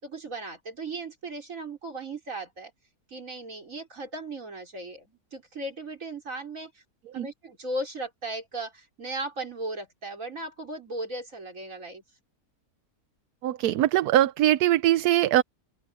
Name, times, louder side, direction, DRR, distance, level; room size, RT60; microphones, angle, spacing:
voice 1, 0.0-2.7 3.1-6.8 7.1-12.0, right 2 dB, 60° right, 5.0 m, -37 dB
voice 2, 13.4-15.4, right 13 dB, 80° right, 1.1 m, -22 dB
open air
omnidirectional pair, 1.6 m